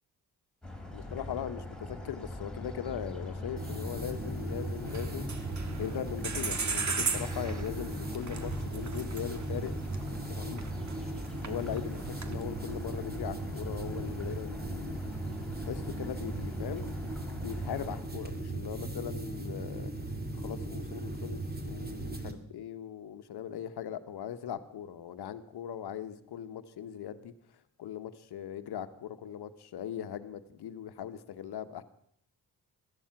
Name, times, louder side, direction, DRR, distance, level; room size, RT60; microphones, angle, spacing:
sound 1, 0.6-18.0, left 1 dB, ahead, 4.0 m, -42 dB
voice 1, 0.9-5.3 5.8-9.7 10.3-10.7 11.5-15.0 15.7-17.0 17.4-19.9 20.3-27.3 27.8-31.8, left 9 dB, 80° left, 11 dB, 1.2 m, -39 dB
sound 2, 3.6-22.3, right 2 dB, 25° right, 2.4 m, -38 dB
sound 3, 4.9-6.0 6.2-10.9 11.2-12.4, right 5 dB, 45° right, 1.7 m, -35 dB
16.5 x 13.0 x 5.9 m, 0.68 s
cardioid pair, 70°, 39 cm